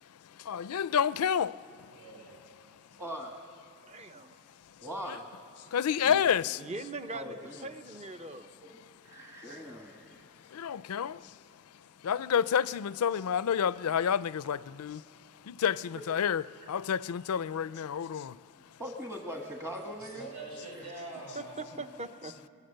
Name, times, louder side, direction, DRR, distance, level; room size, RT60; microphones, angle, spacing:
voice 1, 0.3-1.6 5.1-5.2 5.7-6.6 10.5-11.4 12.0-15.0 15.4-18.4, left 8 dB, 75° left, 0.4 m, -29 dB
voice 2, 1.9-2.4 20.0-21.8, right 2 dB, 75° right, 6.6 m, -44 dB
voice 3, 3.0-3.3 4.8-5.3 7.1-7.7 9.0-10.2 18.8-20.3 20.8-20.9, equal, 15° right, 1.3 m, -40 dB
voice 4, 3.9-4.3 6.0-6.2 6.6-8.5 21.3-22.5, right 2 dB, 30° right, 0.8 m, -41 dB
22.0 x 22.0 x 6.6 m
head